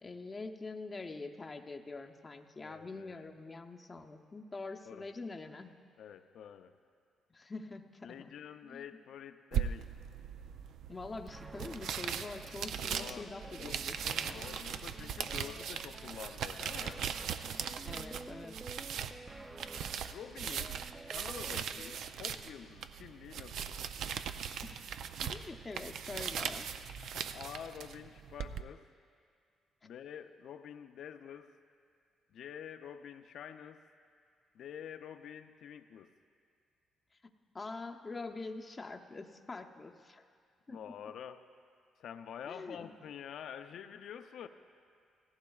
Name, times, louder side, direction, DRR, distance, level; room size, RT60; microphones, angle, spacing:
voice 1, 0.0-5.7 7.3-8.3 8.7-8.8 10.9-14.4 17.8-18.6 24.6-24.9 25.2-26.7 37.2-40.2 40.7-40.9 42.5-42.9, left 3 dB, 25° left, 4 dB, 0.7 m, -45 dB
voice 2, 2.6-3.3 4.9-5.1 6.0-6.7 8.0-9.9 12.9-13.3 13.6-13.8 14.3-17.1 20.1-20.8 21.1-23.9 27.0-28.9 29.8-31.5 32.3-33.8 34.5-36.1 40.7-41.5 42.0-44.5, left 8 dB, 70° left, 9 dB, 0.5 m, -48 dB
sound 1, 9.5-28.6, right 8 dB, 75° right, 0.4 m, -39 dB
sound 2, 11.3-21.9, right 2 dB, 20° right, 0.5 m, -51 dB
17.0 x 15.0 x 2.4 m, 2.2 s
cardioid pair, 90°, 0 cm